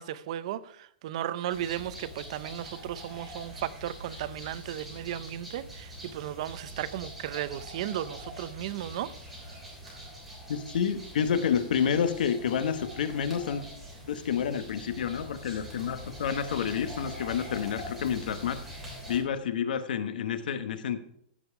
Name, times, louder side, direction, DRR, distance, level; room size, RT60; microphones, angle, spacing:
voice 1, 0.0-9.1 9.5-9.6 9.9-10.0, right 12 dB, 40° right, 15 dB, 0.6 m, -35 dB
sound 1, 1.5-19.2, equal, 5° right, 3.3 m, -44 dB
voice 2, 10.5-13.6 14.1-18.6 19.1-21.0, left 7 dB, 65° left, 11 dB, 1.1 m, -29 dB
15.0 x 5.4 x 4.8 m, 0.70 s
supercardioid pair, 175°, 5 cm